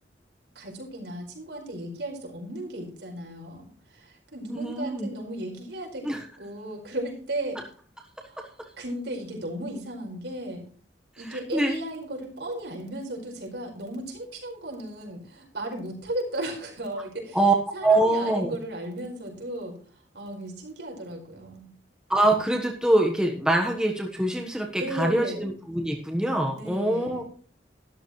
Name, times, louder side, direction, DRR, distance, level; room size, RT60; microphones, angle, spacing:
voice 1, 0.5-7.6 8.3-8.5 8.8-10.6 11.2-17.4 17.7-19.7 20.1-21.7 24.8-25.4 26.5-27.2, right 1 dB, 75° right, 1 dB, 5.0 m, -35 dB
voice 2, 4.5-5.1 6.0-6.2 11.3-11.8 17.3-17.5 17.8-18.5 22.1-27.2, right 1 dB, 5° right, 0 dB, 1.3 m, -24 dB
13.0 x 12.5 x 3.2 m, 0.44 s
head